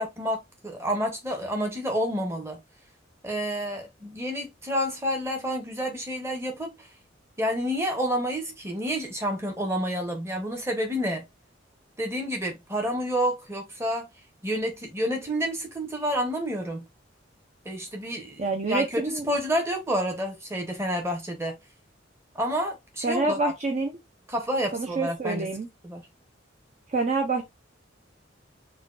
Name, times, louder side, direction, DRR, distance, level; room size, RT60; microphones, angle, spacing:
voice 1, 0.0-2.6 3.2-6.9 7.4-11.2 12.0-14.1 14.4-16.8 17.6-21.6 22.3-23.4 24.3-25.5 25.8-26.0, equal, 15° right, 0.9 m, -29 dB
voice 2, 18.4-19.3 23.0-23.9 24.7-25.7 26.9-27.5, right 3 dB, 40° right, 0.5 m, -27 dB
4.2 x 2.2 x 2.5 m
head